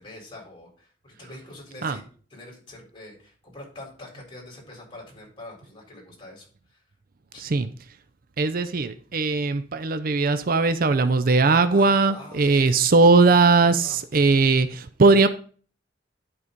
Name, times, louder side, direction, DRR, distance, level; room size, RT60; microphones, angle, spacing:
voice 1, 0.0-2.0 2.3-6.8 7.3-7.4 11.7-12.8 13.6-14.0, left 2 dB, 30° left, 3.9 m, -44 dB
voice 2, 7.4-7.7 8.4-15.3, right 3 dB, 50° right, 0.6 m, -19 dB
11.0 x 4.1 x 5.1 m
head